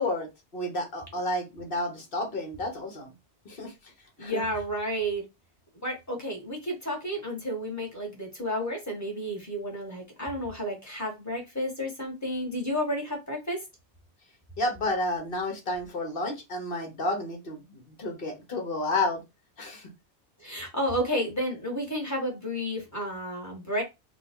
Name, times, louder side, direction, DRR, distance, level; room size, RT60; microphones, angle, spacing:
voice 1, 0.0-3.1 3.4-3.7 4.2-4.4 14.6-19.2 19.6-19.9, left 2 dB, 55° left, 3 dB, 1.3 m, -31 dB
voice 2, 4.2-5.2 5.8-13.6 20.4-23.8, equal, 15° left, -1 dB, 1.5 m, -31 dB
3.7 x 2.4 x 3.6 m, 0.22 s
omnidirectional pair, 1.2 m